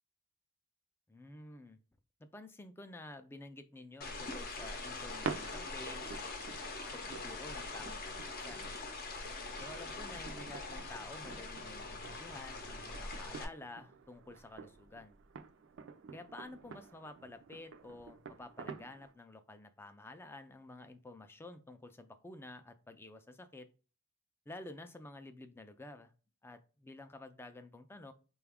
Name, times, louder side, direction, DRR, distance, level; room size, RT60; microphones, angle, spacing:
voice 1, 1.1-1.8 2.2-6.2 6.9-8.7 9.6-15.2 16.1-23.7 24.5-26.1 26.4-28.1, left 2 dB, 10° left, 9 dB, 0.3 m, -51 dB
sound 1, 4.0-13.4, left 3 dB, 45° left, 0.6 m, -43 dB
sound 2, 4.1-19.1, right 6 dB, 60° right, 0.4 m, -49 dB
4.8 x 2.3 x 3.4 m, 0.36 s
head